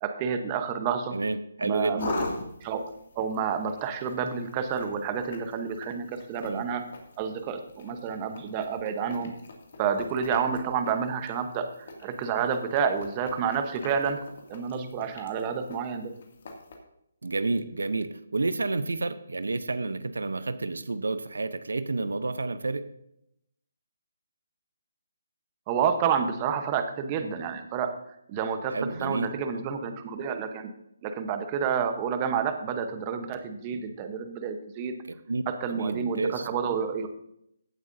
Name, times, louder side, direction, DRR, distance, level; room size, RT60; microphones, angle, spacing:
voice 1, 0.0-1.1 1.6-2.3 2.6-2.8 3.2-6.8 7.2-9.3 9.8-14.2 14.5-16.1 25.7-27.9 28.3-30.7 31.0-34.9 35.5-37.1, right 7 dB, 25° right, 7 dB, 0.9 m, -29 dB
voice 2, 1.1-2.0 6.4-6.7 17.2-22.9 28.7-29.3 35.3-35.4 35.7-36.5, right 3 dB, 85° right, 13 dB, 0.6 m, -30 dB
sound 1, 2.0-16.7, left 2 dB, 55° left, 2.2 m, -42 dB
16.0 x 7.9 x 2.6 m, 0.76 s
hypercardioid pair, 155°, 0 cm